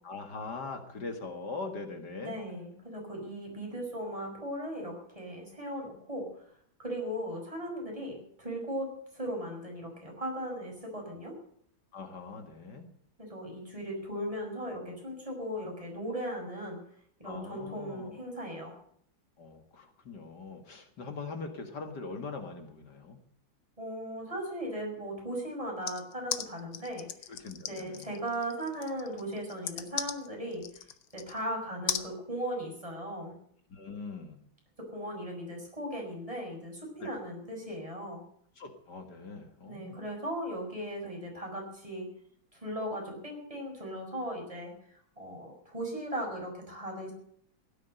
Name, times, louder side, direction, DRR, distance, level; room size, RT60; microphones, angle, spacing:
voice 1, 0.0-2.4 11.9-12.9 17.2-18.2 19.4-23.2 27.3-28.1 33.7-34.4 37.0-37.1 38.6-40.0, left 4 dB, 60° left, 6 dB, 2.3 m, -42 dB
voice 2, 2.2-6.3 6.8-11.3 13.2-16.8 17.2-18.7 23.8-27.1 27.7-30.6 31.1-33.3 34.9-38.2 39.7-42.1 42.5-44.7 45.2-47.1, equal, 15° right, 0 dB, 6.1 m, -37 dB
sound 1, 25.9-31.4 31.9-32.1, left 10 dB, 85° left, 1.8 m, -37 dB
16.5 x 10.0 x 7.8 m, 0.65 s
omnidirectional pair, 2.1 m